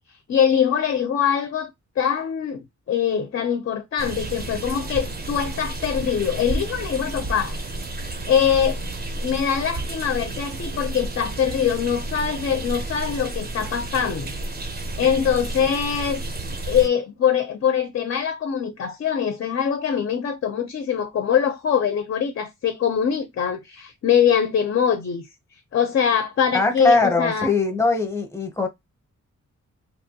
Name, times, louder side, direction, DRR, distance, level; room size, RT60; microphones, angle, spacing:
voice 1, 0.3-1.7 2.0-7.7 8.3-8.8 9.2-14.3 14.6-16.2 16.7-25.3 25.7-27.5, left 8 dB, 45° left, 0.4 m, -23 dB
sound 1, 4.0-16.9, right 2 dB, 35° right, 0.5 m, -31 dB
voice 2, 26.5-28.7, left 3 dB, 10° left, 0.6 m, -21 dB
2.8 x 2.2 x 2.7 m
wide cardioid pair, 175°, 30 cm